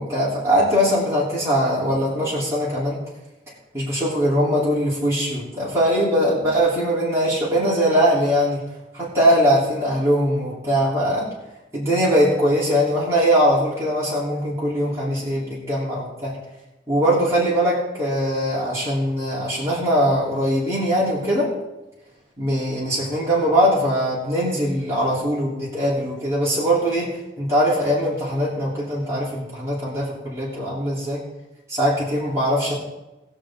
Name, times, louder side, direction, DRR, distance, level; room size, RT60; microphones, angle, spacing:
voice 1, 0.0-3.0 3.7-8.6 8.9-11.3 11.7-16.3 16.9-21.5 22.4-27.1 27.4-31.2 31.7-32.7, equal, 15° right, -9 dB, 3.4 m, -21 dB
20.5 x 6.8 x 3.8 m, 0.99 s
head